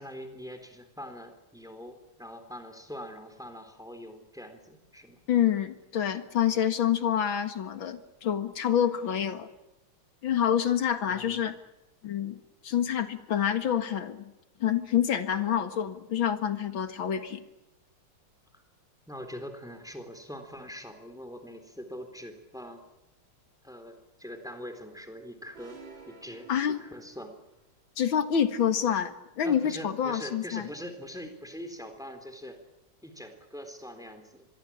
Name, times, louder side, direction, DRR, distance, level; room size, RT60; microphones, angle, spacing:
voice 1, 0.0-5.2 11.1-11.5 18.5-18.6 19.1-22.8 23.6-25.8 26.1-27.3 29.4-32.6 33.0-34.5, equal, ahead, 7 dB, 3.7 m, -43 dB
voice 2, 5.3-9.5 10.2-11.6 12.0-14.3 14.6-17.4 26.5-26.8 28.0-30.7, left 9 dB, 65° left, 9 dB, 2.5 m, -27 dB
sound 1, 25.5-27.5, right 4 dB, 60° right, 5.0 m, -51 dB
26.0 x 22.0 x 8.8 m, 0.88 s
omnidirectional pair, 2.3 m